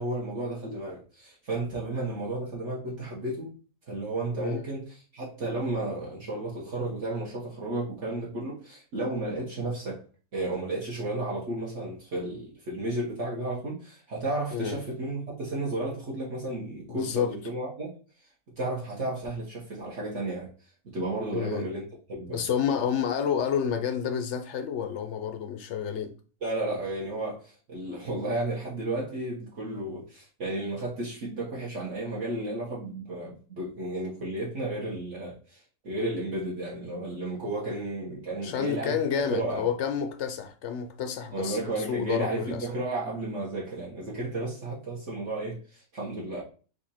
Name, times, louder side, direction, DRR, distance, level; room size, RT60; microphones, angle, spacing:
voice 1, 0.0-3.5 3.9-10.0 10.3-17.9 18.6-20.5 20.9-21.8 22.1-22.4 26.4-39.7 41.3-46.4, right 2 dB, 55° right, 1.4 m, -33 dB
voice 2, 16.9-17.3 21.3-21.7 22.3-26.1 38.4-42.7, left 7 dB, 65° left, 0.7 m, -29 dB
4.3 x 2.5 x 4.2 m
omnidirectional pair, 1.6 m